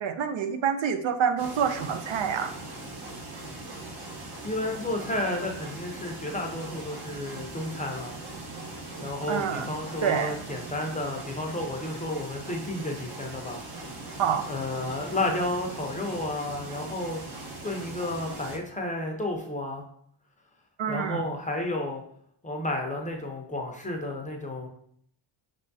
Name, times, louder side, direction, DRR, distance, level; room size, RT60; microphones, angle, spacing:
voice 1, 0.0-2.5 9.3-9.7 10.0-10.3 14.2-14.5 20.8-21.2, right 7 dB, 70° right, 8 dB, 0.6 m, -27 dB
sound 1, 1.4-18.6, right 2 dB, 50° right, 1.0 m, -40 dB
voice 2, 4.4-8.2 9.0-13.6 14.5-17.2 17.6-19.8 20.9-22.0 22.4-24.7, left 1 dB, 15° left, 1 dB, 0.6 m, -32 dB
5.2 x 3.4 x 2.7 m, 0.66 s
wide cardioid pair, 130°, 49 cm